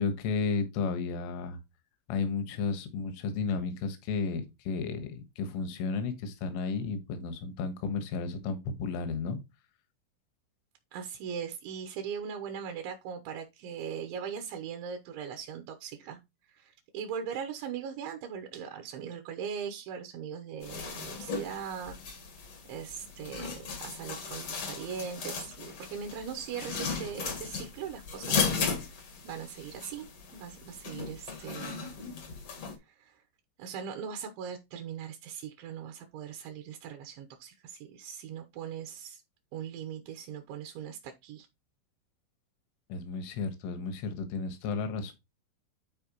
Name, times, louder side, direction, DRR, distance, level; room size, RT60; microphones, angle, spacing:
voice 1, 0.0-1.6 2.1-9.4 42.9-45.1, left 4 dB, 75° left, 3.9 m, -33 dB
voice 2, 10.9-16.2 16.5-22.0 22.7-28.5 28.8-29.0 29.2-31.9 32.9-33.2 33.6-39.2 39.5-41.5, right 7 dB, 75° right, 3.1 m, -40 dB
sound 1, 20.6-32.7, left 5 dB, 60° left, 1.5 m, -36 dB
12.0 x 4.4 x 3.0 m
omnidirectional pair, 5.7 m